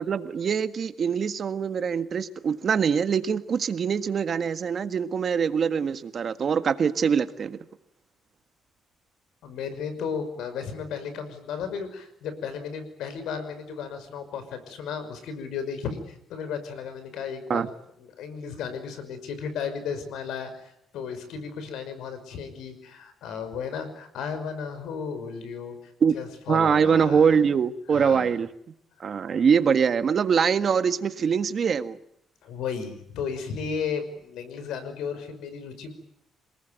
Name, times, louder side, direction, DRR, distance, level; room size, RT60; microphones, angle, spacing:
voice 1, 0.0-7.6 17.5-17.7 26.0-26.1 26.5-28.5 29.0-32.0, right 6 dB, 50° right, 11 dB, 1.6 m, -23 dB
voice 2, 9.4-17.7 18.0-25.8 26.1-27.4 27.9-28.3 32.4-35.9, left 6 dB, 85° left, 11 dB, 5.6 m, -34 dB
27.5 x 19.0 x 9.3 m, 0.75 s
cardioid pair, 90°, 0 cm